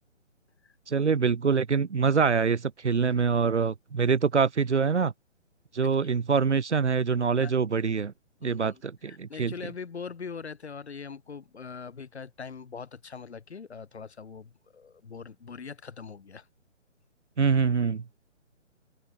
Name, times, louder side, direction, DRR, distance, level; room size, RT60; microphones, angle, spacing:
voice 1, 0.9-5.1 5.7-8.1 8.4-9.5 17.4-18.2, right 5 dB, 65° right, 1.5 m, -25 dB
voice 2, 8.4-16.5, left 5 dB, 60° left, 6.7 m, -42 dB
open air
figure-of-eight pair, 140°, 37 cm